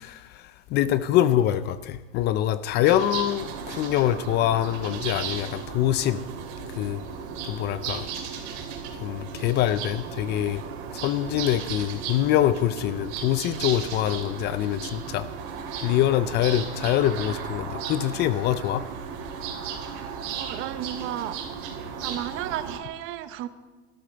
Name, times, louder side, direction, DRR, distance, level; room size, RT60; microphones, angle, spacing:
voice 1, 0.0-6.2 6.8-7.0 7.4-8.1 9.0-10.6 10.9-15.3 15.8-18.8, left 12 dB, 30° left, 0.4 m, -24 dB
sound 1, 2.8-22.8, right 6 dB, 55° right, 2.9 m, -35 dB
voice 2, 19.9-21.4 22.0-23.5, right 12 dB, 40° right, 0.9 m, -33 dB
13.0 x 12.0 x 6.8 m
supercardioid pair, 135°, 33 cm